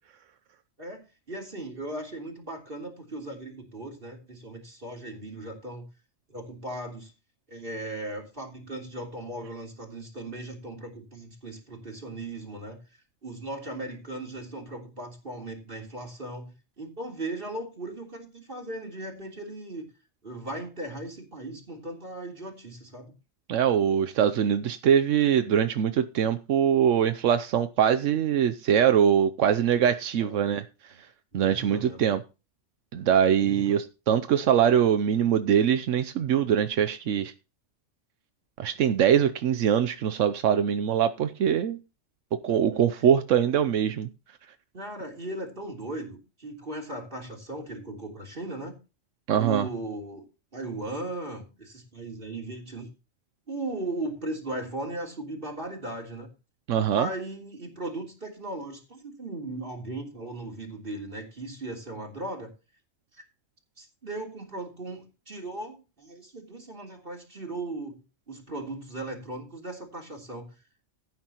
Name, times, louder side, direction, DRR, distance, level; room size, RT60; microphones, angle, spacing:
voice 1, 0.8-5.9 6.3-7.1 7.5-19.9 20.2-23.1 30.2-30.4 30.9-31.0 31.3-32.1 33.3-33.8 42.7-42.9 44.7-48.8 49.4-50.3 50.5-52.9 53.5-56.3 57.0-62.5 63.1-63.2 63.8-68.0 68.3-70.5, right 2 dB, 45° right, 3.5 m, -37 dB
voice 2, 23.5-30.6 31.3-32.2 32.9-37.3 38.6-41.8 42.3-44.1 49.3-49.7 56.7-57.1, right 9 dB, 85° right, 1.1 m, -23 dB
16.0 x 9.4 x 2.9 m
omnidirectional pair, 1.3 m